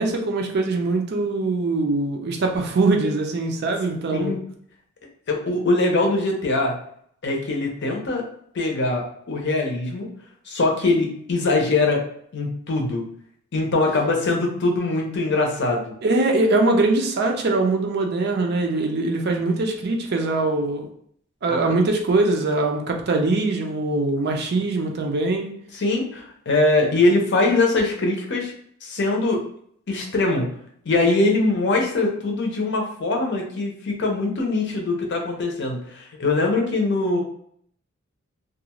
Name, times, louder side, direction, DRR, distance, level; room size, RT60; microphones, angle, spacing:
voice 1, 0.0-4.3 16.0-20.9 21.4-25.5, right 2 dB, 50° right, 3 dB, 0.4 m, -22 dB
voice 2, 5.3-6.7 7.2-8.2 8.5-10.1 10.5-12.0 12.3-13.1 13.5-15.9 21.5-21.6 25.7-28.5 28.8-29.4 29.9-30.6 30.8-37.2, left 2 dB, 55° left, 1 dB, 0.6 m, -22 dB
2.4 x 2.3 x 2.9 m, 0.65 s
head